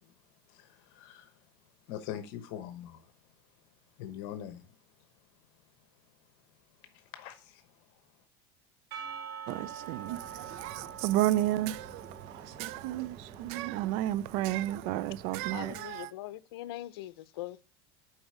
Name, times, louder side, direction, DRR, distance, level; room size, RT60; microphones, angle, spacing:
voice 1, 0.5-1.3 1.9-3.0 4.0-4.6 7.1-7.6, left 10 dB, 60° left, 1.0 m, -42 dB
Percussion / Church bell, 8.9-13.9, right 7 dB, 80° right, 2.2 m, -45 dB
voice 2, 9.5-16.1, right 14 dB, 55° right, 0.4 m, -32 dB
sound 1, 10.0-15.9, right 5 dB, 20° right, 0.8 m, -52 dB
voice 3, 15.5-17.6, left 15 dB, 75° left, 0.7 m, -42 dB
7.9 x 4.9 x 4.9 m
supercardioid pair, 140°, 13 cm